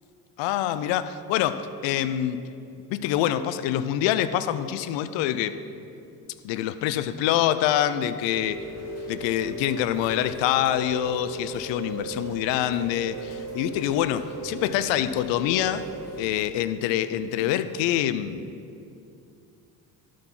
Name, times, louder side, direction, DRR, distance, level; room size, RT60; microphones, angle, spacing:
voice 1, 0.4-2.4 2.9-5.6 6.4-8.6 9.1-15.8 16.2-18.6, left 11 dB, 60° left, 13 dB, 0.6 m, -25 dB
Rain, 8.2-16.2, right 1 dB, 30° left, 2.8 m, -37 dB
12.0 x 6.2 x 6.0 m, 2.6 s
hypercardioid pair, 60°, 49 cm